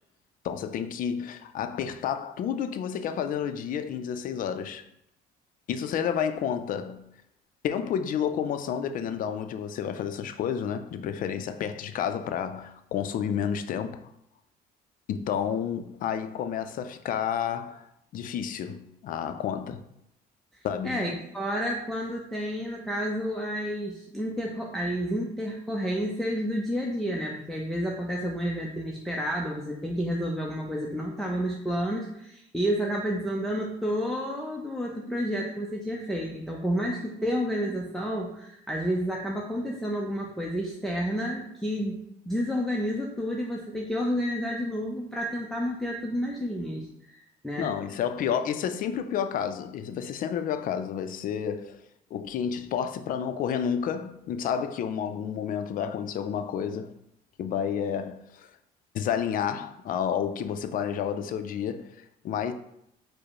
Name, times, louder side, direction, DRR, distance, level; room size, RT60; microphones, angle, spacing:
voice 1, 0.4-4.8 5.7-7.0 7.6-14.0 15.1-17.8 18.1-19.8 20.6-21.1 47.6-51.8 52.1-56.9 57.4-58.5 58.9-62.5, left 8 dB, 55° left, 0.4 m, -30 dB
voice 2, 20.5-42.0 42.3-47.7, equal, ahead, 0.5 m, -30 dB
4.7 x 2.1 x 4.7 m
cardioid pair, 110°, 17 cm